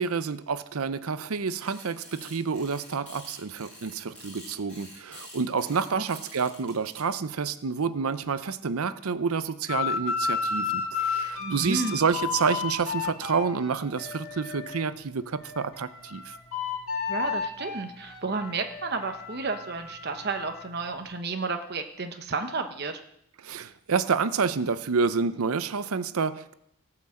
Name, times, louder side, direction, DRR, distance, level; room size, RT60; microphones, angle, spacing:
voice 1, 0.0-16.3 23.4-26.5, right 5 dB, 85° right, 14 dB, 0.6 m, -29 dB
sound 1, 1.3-7.0, left 1 dB, 5° left, 6.9 m, -47 dB
sound 2, 9.7-14.9 15.4-20.7, left 5 dB, 75° left, 3.1 m, -33 dB
voice 2, 11.4-12.0 17.1-23.0, right 3 dB, 50° right, 6 dB, 0.9 m, -32 dB
17.5 x 6.0 x 7.6 m, 0.75 s
head